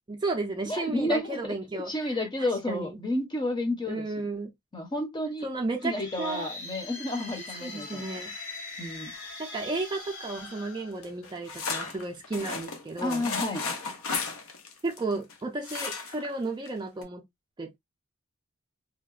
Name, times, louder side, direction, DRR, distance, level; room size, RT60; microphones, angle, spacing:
voice 1, 0.1-3.0 3.9-4.5 5.4-6.5 7.6-8.3 9.4-13.3 14.8-17.2 17.6-17.8, right 3 dB, 20° right, 0.4 m, -33 dB
voice 2, 0.7-1.4 1.7-4.3 4.7-5.5 5.8-8.0 8.8-9.1 13.0-13.7, left 1 dB, 20° left, 0.6 m, -31 dB
sound 1, 5.7-11.6, left 3 dB, 65° left, 1.6 m, -42 dB
sound 2, 11.0-15.3 15.6-16.3 16.7-16.8 17.0-17.1, left 4 dB, 85° left, 0.6 m, -34 dB
2.8 x 2.1 x 2.3 m
head